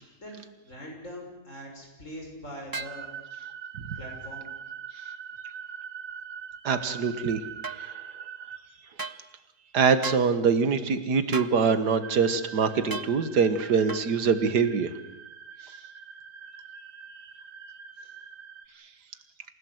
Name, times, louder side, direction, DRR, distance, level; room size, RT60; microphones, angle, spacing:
voice 1, 0.2-3.1 3.9-4.5 18.0-18.1, equal, 50° left, 0 dB, 6.6 m, -42 dB
sound 1, 2.7-3.0 7.6-7.8 9.0-9.2 10.0-10.3 11.3-11.6 12.9-13.1 13.9-14.1, right 4 dB, 30° right, 0.3 m, -35 dB
sound 2, 2.8-8.6 12.0-18.7, right 7 dB, 55° right, 1.7 m, -43 dB
voice 2, 6.6-7.4 7.7-7.9 9.7-14.9, right 5 dB, 85° right, 11 dB, 2.0 m, -24 dB
28.0 x 16.5 x 7.9 m, 0.95 s
omnidirectional pair, 1.7 m